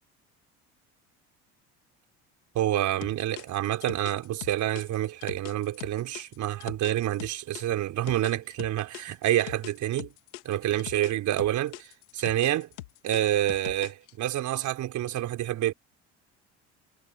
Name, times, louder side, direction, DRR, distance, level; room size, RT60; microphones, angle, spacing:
voice 1, 2.5-10.1 10.4-12.7 13.0-15.7, right 13 dB, 60° right, 4.2 m, -28 dB
sound 1, 3.0-7.6 8.1-11.1 11.4-14.1, left 17 dB, 90° left, 3.1 m, -42 dB
hypercardioid pair, 70°, 33 cm